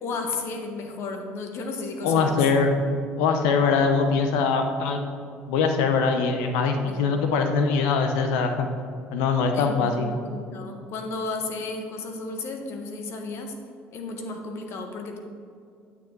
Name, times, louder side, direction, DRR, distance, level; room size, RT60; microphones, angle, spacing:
voice 1, 0.0-2.4 6.8-7.0 9.5-13.5 13.9-15.2, left 3 dB, 65° left, 4 dB, 1.5 m, -33 dB
voice 2, 2.0-2.7 3.2-5.0 5.5-8.7 9.1-10.1, left 5 dB, 85° left, 5 dB, 0.8 m, -22 dB
9.8 x 8.9 x 4.0 m, 2.4 s
supercardioid pair, 80°, 5 cm